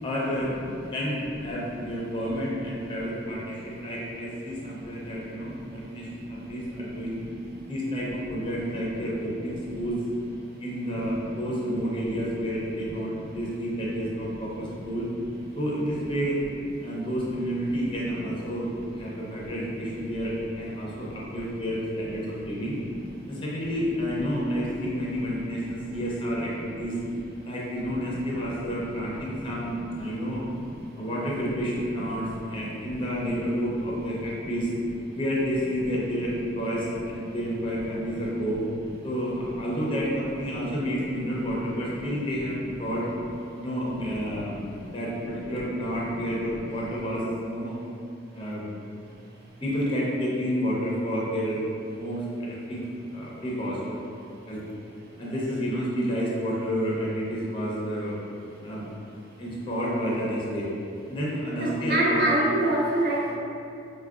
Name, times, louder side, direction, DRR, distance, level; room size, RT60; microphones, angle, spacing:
voice 1, 0.0-0.5 0.9-7.2 7.7-10.0 10.6-15.1 15.6-16.4 16.8-18.7 18.9-22.8 23.3-27.0 27.4-30.5 31.0-34.7 35.1-38.6 39.0-43.1 43.6-44.6 44.9-47.8 48.3-48.7 49.6-51.6 52.0-52.8 53.1-54.0 54.5-54.6 55.2-58.2 58.6-58.8 59.4-60.7 61.1-62.3, equal, 25° left, -5 dB, 0.5 m, -30 dB
voice 2, 61.6-63.4, right 1 dB, 50° right, -3 dB, 0.5 m, -26 dB
4.4 x 2.1 x 2.4 m, 2.6 s
head